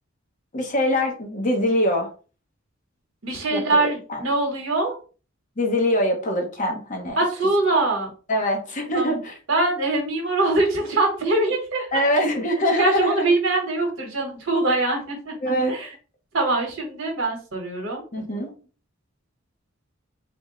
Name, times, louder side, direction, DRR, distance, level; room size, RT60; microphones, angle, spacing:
voice 1, 0.5-2.1 3.5-4.2 5.6-7.2 8.3-9.3 11.9-13.3 15.4-15.8 18.1-18.5, equal, 40° left, 2 dB, 0.9 m, -23 dB
voice 2, 3.2-4.9 7.2-8.1 8.9-9.2 9.5-11.9 12.8-15.3 15.7-15.9 16.3-18.0, right 2 dB, 70° right, 2 dB, 1.0 m, -23 dB
3.5 x 2.1 x 3.7 m, 0.37 s
head